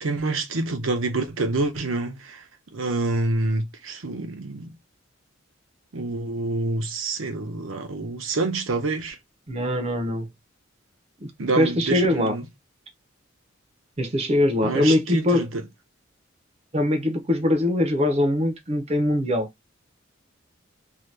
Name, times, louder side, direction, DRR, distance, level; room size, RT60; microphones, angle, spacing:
voice 1, 0.0-2.4 2.7-4.7 5.9-9.2 11.4-12.5 14.6-15.5, right 2 dB, 75° right, 0.7 m, -27 dB
voice 2, 9.5-10.3 11.2-12.4 14.0-15.4 16.7-19.5, left 1 dB, 30° right, 0.6 m, -22 dB
2.7 x 2.2 x 3.2 m
head